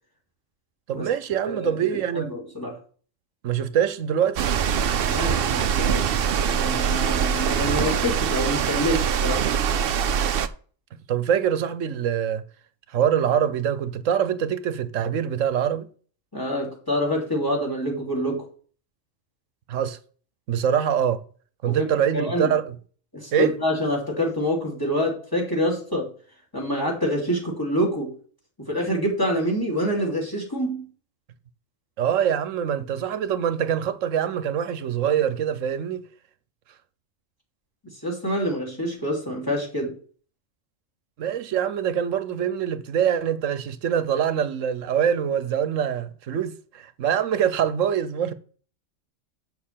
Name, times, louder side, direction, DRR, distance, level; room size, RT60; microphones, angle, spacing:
voice 1, 0.9-2.3 3.4-4.5 11.1-12.4 12.9-15.9 19.7-20.0 20.5-21.2 21.6-22.7 23.3-23.5 32.0-36.0 41.2-48.3, right 9 dB, 80° right, 1.1 m, -24 dB
voice 2, 1.4-1.8 2.1-2.8 5.0-9.4 16.3-18.4 21.6-21.9 22.1-22.5 23.1-26.1 26.5-28.1 28.6-30.9 38.0-40.0, equal, 15° left, 2.8 m, -26 dB
sound 1, 4.4-10.5, right 8 dB, 55° right, 0.7 m, -23 dB
6.6 x 6.5 x 7.4 m
omnidirectional pair, 1.3 m